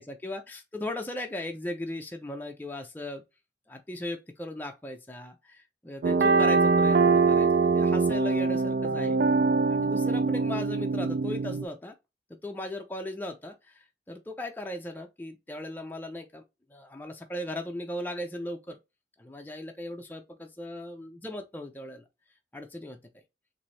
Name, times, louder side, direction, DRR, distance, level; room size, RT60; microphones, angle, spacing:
voice 1, 0.0-3.2 3.7-9.2 9.7-12.0 12.4-16.4 16.7-18.8 19.2-22.0 22.5-23.0, left 1 dB, 10° left, 0.4 m, -37 dB
sound 1, 6.0-11.7, right 4 dB, 60° right, 0.3 m, -23 dB
4.0 x 2.6 x 3.1 m
head